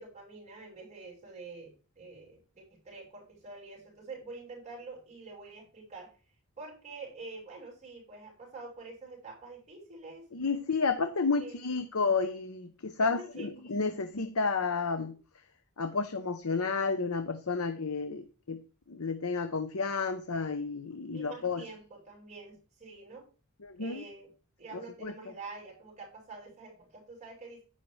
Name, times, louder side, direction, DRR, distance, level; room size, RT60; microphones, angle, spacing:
voice 1, 0.0-6.1 6.6-10.3 11.4-11.8 13.0-13.5 13.9-14.0 21.1-23.3 23.8-24.3 24.6-27.6, right 3 dB, 35° right, -3 dB, 5.9 m, -47 dB
voice 2, 10.3-15.1 15.8-18.6 18.9-21.6 23.6-24.0 25.0-25.1, left 4 dB, 80° left, 9 dB, 0.9 m, -31 dB
11.0 x 10.0 x 3.3 m, 0.35 s
head